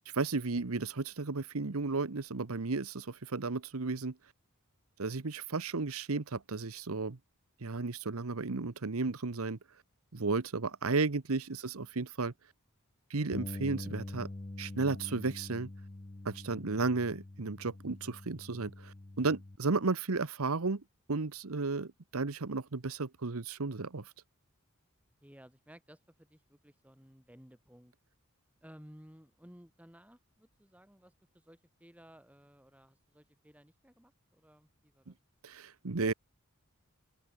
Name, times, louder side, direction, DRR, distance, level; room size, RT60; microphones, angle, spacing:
voice 1, 0.1-4.1 5.0-7.2 7.6-9.6 10.1-12.3 13.1-14.3 14.6-15.7 16.2-20.8 21.1-24.1 35.4-36.1, right 3 dB, 85° right, 1.0 m, -33 dB
Bass guitar, 13.3-19.6, left 2 dB, 25° left, 0.6 m, -45 dB
voice 2, 25.2-27.9 28.6-35.2, equal, 5° right, 2.9 m, -57 dB
head